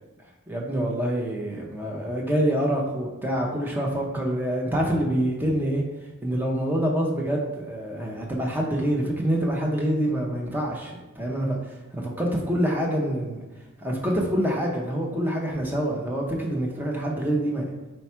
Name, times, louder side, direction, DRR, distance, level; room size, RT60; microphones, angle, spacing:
voice 1, 0.5-5.8 6.2-13.4 13.8-17.6, right 1 dB, 10° right, -2 dB, 0.5 m, -26 dB
4.3 x 2.3 x 4.3 m, 1.2 s
head